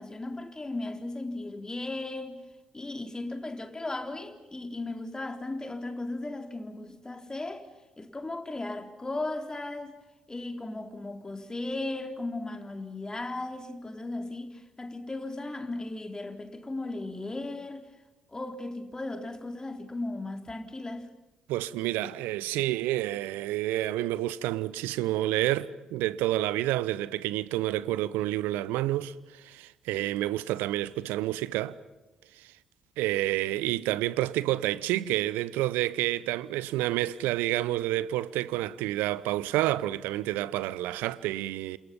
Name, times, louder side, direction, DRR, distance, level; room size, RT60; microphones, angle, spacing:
voice 1, 0.0-2.4 2.7-7.7 8.0-9.9 10.3-17.9 18.3-21.1, left 2 dB, 20° left, 3.8 m, -36 dB
voice 2, 21.5-29.1 29.4-31.8 33.0-41.8, right 15 dB, 70° right, 0.9 m, -29 dB
30.0 x 28.0 x 5.4 m
hypercardioid pair, 45°, 3 cm